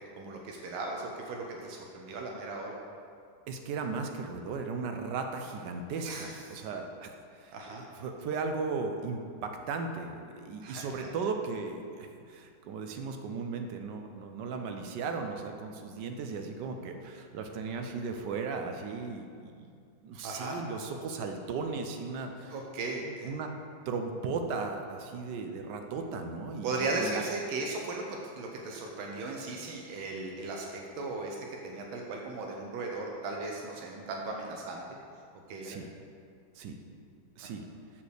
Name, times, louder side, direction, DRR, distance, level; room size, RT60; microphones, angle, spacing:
voice 1, 0.2-2.8 6.0-6.6 7.5-7.8 10.6-11.1 20.2-20.6 22.5-23.3 26.6-31.4 31.6-34.8 35.5-35.8, right 3 dB, 85° right, 0 dB, 1.6 m, -37 dB
voice 2, 3.5-19.7 20.0-22.6 23.0-23.5 23.9-27.2 35.6-35.9 36.5-36.8 37.4-37.6, right 4 dB, 70° right, 5 dB, 1.1 m, -36 dB
7.1 x 4.4 x 6.5 m, 2.3 s
omnidirectional pair, 2.2 m